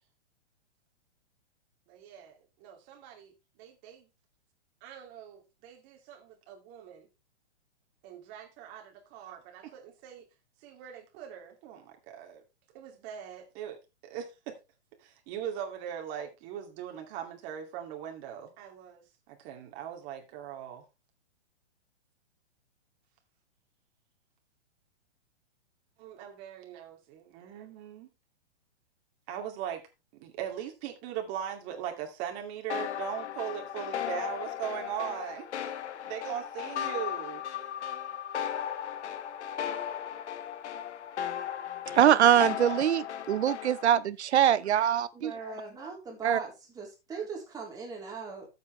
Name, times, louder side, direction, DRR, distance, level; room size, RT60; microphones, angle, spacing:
voice 1, 1.9-3.3 3.6-4.1 4.8-7.1 8.0-10.3 10.6-12.4 12.7-14.6 15.0-20.8 26.0-28.1 29.3-29.8 30.1-35.8 36.1-37.4, right 9 dB, 30° right, 2.4 m, -40 dB
sound 1, 32.7-44.0, left 9 dB, 75° left, 1.1 m, -36 dB
voice 2, 41.9-45.3 46.2-46.4, right 10 dB, 70° right, 1.0 m, -23 dB
voice 3, 45.1-48.5, right 4 dB, 10° right, 3.6 m, -40 dB
13.0 x 7.8 x 3.3 m
hypercardioid pair, 155°, 35 cm